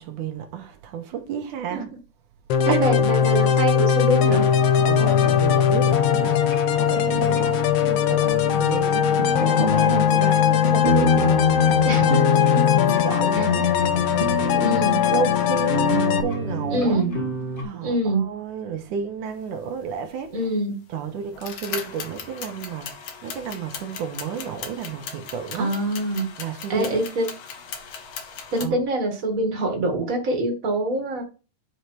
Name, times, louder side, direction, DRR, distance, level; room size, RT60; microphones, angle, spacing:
voice 1, 0.0-1.9 2.7-2.9 4.9-12.3 12.7-14.7 15.1-17.1 17.6-20.5 20.9-25.7 26.4-27.0 28.6-28.8, right 7 dB, 75° right, 2.5 m, -32 dB
sound 1, 2.5-16.2, left 9 dB, 85° left, 1.3 m, -20 dB
voice 2, 2.7-4.5 11.8-13.0 13.4-13.5 14.6-15.0 16.7-17.1 17.8-18.3 20.3-20.8 25.6-26.3 26.7-27.3 28.5-31.2, right 1 dB, 30° right, 2.0 m, -25 dB
sound 2, 4.2-17.6, left 2 dB, 30° left, 1.5 m, -27 dB
sound 3, 20.4-20.5 21.3-28.6, left 6 dB, 65° left, 1.3 m, -38 dB
10.0 x 5.0 x 4.6 m
omnidirectional pair, 3.9 m